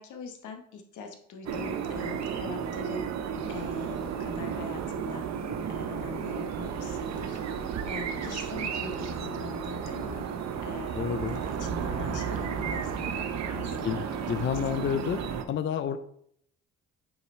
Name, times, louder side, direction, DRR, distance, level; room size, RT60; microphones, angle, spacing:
voice 1, 0.0-3.1 3.5-5.3 5.7-10.2 10.6-14.9, left 5 dB, 80° left, 5 dB, 1.1 m, -43 dB
sound 1, 1.5-15.5, right 7 dB, 60° right, 0.8 m, -33 dB
voice 2, 10.9-11.4 13.8-15.2 15.5-16.0, left 9 dB, 40° left, 11 dB, 0.4 m, -30 dB
5.3 x 4.8 x 4.3 m, 0.69 s
cardioid pair, 90°, 30 cm